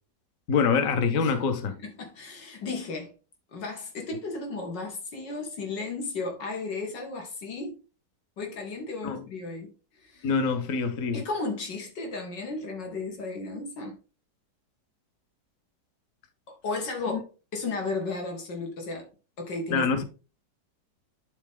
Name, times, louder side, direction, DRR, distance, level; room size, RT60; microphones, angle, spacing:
voice 1, 0.5-1.7 9.0-9.2 10.2-11.2 17.1-17.2 19.7-20.0, left 5 dB, 55° left, 1.4 m, -25 dB
voice 2, 1.7-3.1 3.5-7.8 8.4-9.7 10.0-10.3 11.1-14.0 16.5-17.3 17.5-19.1 19.4-19.8, left 3 dB, 80° left, 2.7 m, -34 dB
10.5 x 4.4 x 3.6 m
omnidirectional pair, 1.9 m